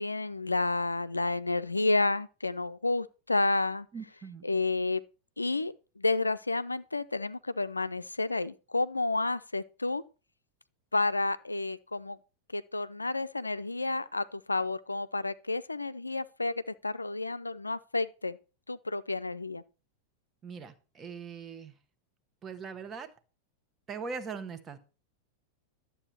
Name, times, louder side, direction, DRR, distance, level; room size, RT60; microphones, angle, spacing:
voice 1, 0.0-3.9 4.4-5.0 5.4-10.0 10.9-12.2 12.5-18.4 18.7-19.6, left 2 dB, 80° left, 0.4 m, -30 dB
voice 2, 3.9-4.4 20.4-21.7 22.4-23.1 23.9-24.8, right 5 dB, 25° right, 1.4 m, -40 dB
11.5 x 7.5 x 4.3 m
figure-of-eight pair, 90°, 0 cm